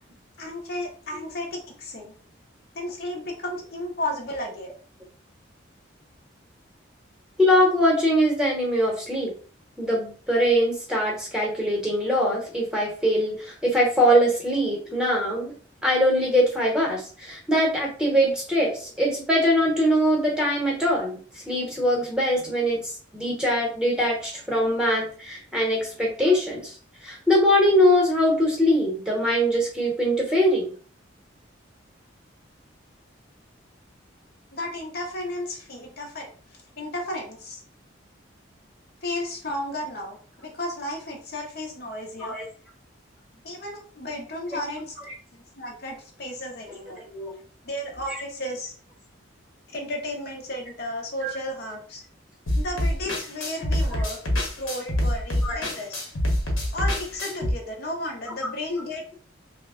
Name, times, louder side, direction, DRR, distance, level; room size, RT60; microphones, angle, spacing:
voice 1, 0.4-2.1 2.7-4.7 34.5-36.3 36.8-37.6 39.0-40.2 40.4-42.4 43.4-44.9 45.6-47.0 47.6-48.7 49.7-52.0 52.6-56.0 56.7-59.1, left 1 dB, 50° left, 1 dB, 0.7 m, -33 dB
voice 2, 7.4-9.3 9.8-15.5 15.8-26.7 27.0-30.7 42.2-42.4 47.1-47.3 51.2-51.3 55.4-55.6, equal, 5° right, -3 dB, 0.9 m, -22 dB
sound 1, 52.5-57.5, left 1 dB, 85° left, 1.0 m, -26 dB
3.1 x 2.1 x 3.6 m, 0.41 s
head